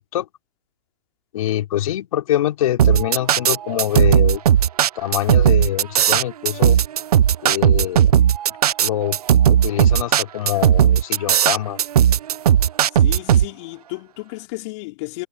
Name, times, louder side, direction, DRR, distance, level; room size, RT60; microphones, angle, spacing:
voice 1, 1.3-4.4 5.0-6.8 7.4-8.2 8.8-9.2 9.5-11.8, left 12 dB, 60° left, 4.2 m, -24 dB
sound 1, 2.8-13.5, right 10 dB, 75° right, 0.9 m, -15 dB
voice 2, 12.9-15.3, left 24 dB, 45° left, 5.2 m, -33 dB
hypercardioid pair, 125°, 20 cm